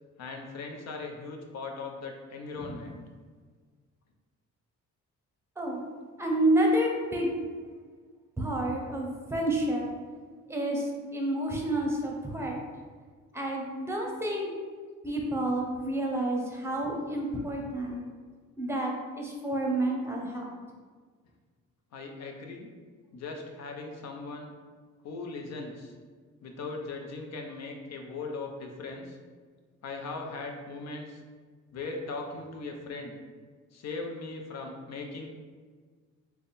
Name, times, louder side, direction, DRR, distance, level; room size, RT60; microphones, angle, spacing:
voice 1, 0.2-3.0 21.9-22.7 23.1-24.5 25.0-25.9 26.4-29.2 29.8-31.2 31.7-33.2 33.7-35.3, left 3 dB, 60° left, 2 dB, 0.7 m, -39 dB
voice 2, 6.2-7.3 8.4-9.9 10.5-12.6 13.3-14.5 15.0-18.0 18.6-20.5, right 1 dB, 10° right, 0 dB, 0.7 m, -29 dB
3.5 x 2.2 x 4.1 m, 1.5 s
cardioid pair, 90°, 30 cm